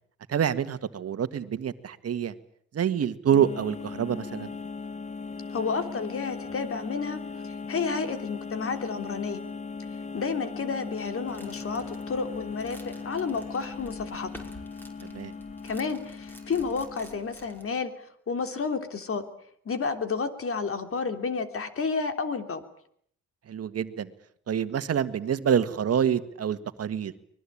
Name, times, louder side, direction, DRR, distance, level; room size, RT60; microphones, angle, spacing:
voice 1, 0.3-2.3 2.7-4.5 15.1-15.3 23.5-24.1 24.5-27.1, right 8 dB, 55° right, 11 dB, 1.9 m, -26 dB
sound 1, 3.3-17.5, left 4 dB, 25° left, 1.1 m, -39 dB
voice 2, 5.5-9.4 10.1-14.3 15.6-17.9 18.3-19.2 19.6-22.6, left 5 dB, 45° left, 8 dB, 3.3 m, -31 dB
sound 2, 11.3-17.7, equal, 5° left, 5.6 m, -50 dB
24.5 x 20.5 x 8.7 m, 0.66 s
cardioid pair, 90°, 30 cm